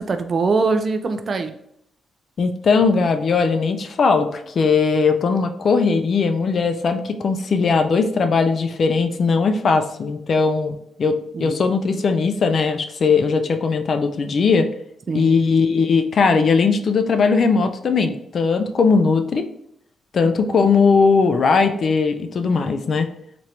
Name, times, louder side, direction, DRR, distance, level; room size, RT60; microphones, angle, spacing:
voice 1, 0.0-1.5 11.3-11.7 15.1-15.4, right 4 dB, 45° right, 8 dB, 0.4 m, -23 dB
voice 2, 2.4-14.7 15.1-19.5 20.1-23.1, left 4 dB, 55° left, 7 dB, 0.4 m, -19 dB
3.1 x 2.5 x 2.9 m, 0.72 s
cardioid pair, 80°, 0 cm